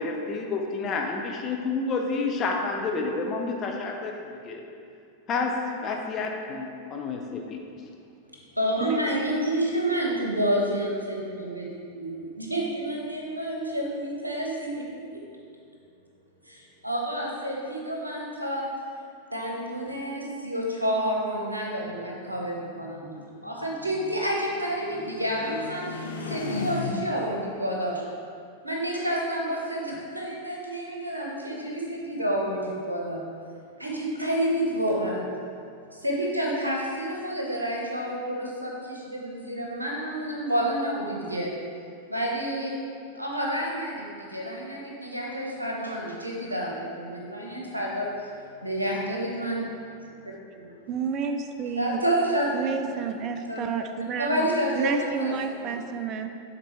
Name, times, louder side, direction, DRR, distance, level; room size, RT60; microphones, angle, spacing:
voice 1, 0.0-4.7 5.3-5.5 5.8-7.6, left 4 dB, 30° left, 1 dB, 0.7 m, -29 dB
voice 2, 8.6-11.7 11.9-14.9 16.5-18.7 19.3-28.0 28.6-33.2 33.8-35.3 35.9-41.5 42.1-42.7 43.1-48.3 48.6-49.7 51.8-55.7, right 1 dB, 85° right, -2 dB, 1.0 m, -29 dB
sound 1, 21.9-27.4, left 3 dB, 65° left, 0.7 m, -37 dB
voice 3, 50.9-52.0 52.5-54.5 54.7-56.3, right 5 dB, 35° right, 7 dB, 0.4 m, -30 dB
9.0 x 4.1 x 3.2 m, 2.4 s
figure-of-eight pair, 90°, 0 cm